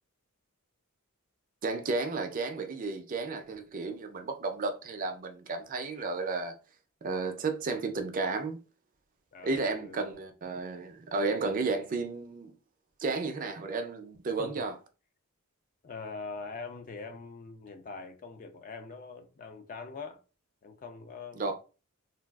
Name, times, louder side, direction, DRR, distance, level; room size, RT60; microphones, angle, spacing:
voice 1, 1.6-6.6 7.0-8.6 9.4-12.5 13.0-14.7 21.3-21.5, right 3 dB, 35° right, 0.4 m, -33 dB
voice 2, 9.3-10.2 14.4-14.6 15.8-20.2 20.6-21.5, left 4 dB, 35° left, 0.4 m, -43 dB
3.3 x 2.3 x 2.3 m
head